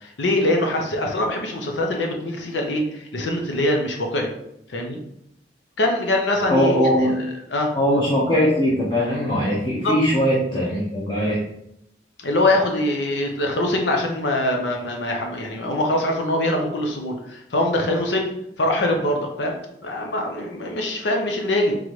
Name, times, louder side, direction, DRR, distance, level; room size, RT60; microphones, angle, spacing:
voice 1, 0.0-4.3 4.7-5.0 5.8-7.1 7.5-7.7 9.8-9.9 12.2-18.3 18.6-21.7, left 1 dB, 90° left, 2 dB, 0.8 m, -23 dB
voice 2, 6.5-7.2 7.7-11.5, equal, 30° left, -5 dB, 0.7 m, -20 dB
3.8 x 3.1 x 3.1 m, 0.78 s
head